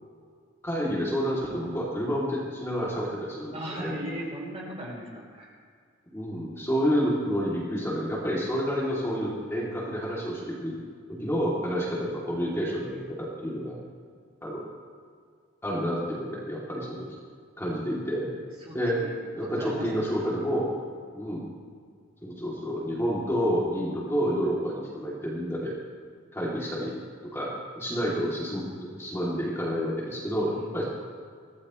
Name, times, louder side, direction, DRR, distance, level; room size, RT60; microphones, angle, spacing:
voice 1, 0.6-3.9 6.1-10.8 11.2-13.8 14.4-14.6 15.6-17.1 17.6-18.3 18.7-19.0 19.3-20.7 21.1-21.5 22.2-25.7 26.3-26.9 27.3-28.6 29.0-30.8, equal, 15° left, -6 dB, 3.0 m, -29 dB
voice 2, 3.5-5.5 11.2-11.3 18.6-19.1 19.6-20.7 26.4-26.5 30.5-30.8, equal, 30° right, -3 dB, 5.0 m, -38 dB
24.0 x 17.5 x 3.2 m, 2.1 s
head